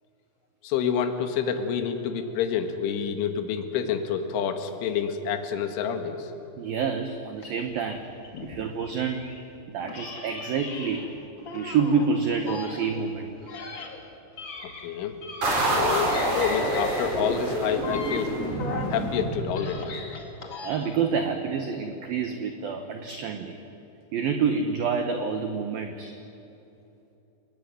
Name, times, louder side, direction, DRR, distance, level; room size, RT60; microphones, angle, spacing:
voice 1, 0.6-6.3 8.3-8.6 9.8-10.0 14.6-15.2 15.7-18.4 18.9-19.9, left 7 dB, 70° left, 6 dB, 4.1 m, -28 dB
voice 2, 6.6-8.1 8.4-9.2 9.7-11.1 11.5-13.3 20.6-23.6 24.1-26.2, right 6 dB, 70° right, 6 dB, 2.2 m, -28 dB
sound 1, 7.4-9.5 9.9-12.1 12.4-15.8 16.1-19.0 19.4-21.1, left 4 dB, 40° left, 1.7 m, -39 dB
sound 2, 15.4-19.9, right 1 dB, 35° right, 6.2 m, -27 dB
29.5 x 18.5 x 9.8 m, 2.9 s
omnidirectional pair, 5.9 m